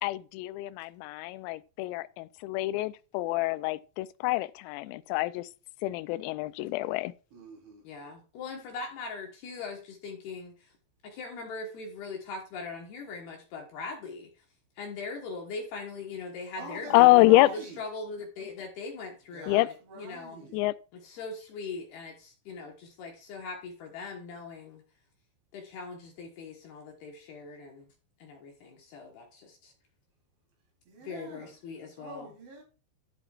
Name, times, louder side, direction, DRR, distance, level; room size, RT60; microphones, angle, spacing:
voice 1, 0.0-5.5 5.8-7.1 16.9-17.5 19.5-19.7 20.5-20.7, left 19 dB, 90° left, 3.3 m, -25 dB
voice 2, 7.3-7.8 16.6-17.0 17.2-17.7 19.3-19.6 19.9-20.6 30.9-31.5 32.0-32.6, right 3 dB, 65° right, 5.9 m, -45 dB
voice 3, 7.8-10.7 11.0-14.3 14.8-17.5 17.8-20.5 21.0-24.8 25.5-27.9 28.2-29.7 31.0-32.3, left 4 dB, 65° left, 2.9 m, -41 dB
12.0 x 7.8 x 2.4 m
omnidirectional pair, 5.9 m